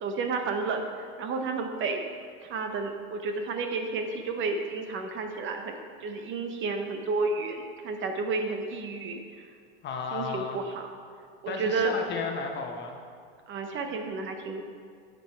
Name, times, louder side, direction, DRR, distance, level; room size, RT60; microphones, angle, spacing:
voice 1, 0.0-0.9 1.2-2.0 2.4-9.2 10.1-10.9 11.4-11.9 13.5-14.6, right 4 dB, 40° right, 5 dB, 0.9 m, -31 dB
voice 2, 9.8-10.6 11.5-13.0, left 4 dB, 35° left, 2 dB, 1.1 m, -33 dB
7.8 x 5.8 x 4.5 m, 2.2 s
hypercardioid pair, 100°, 30 cm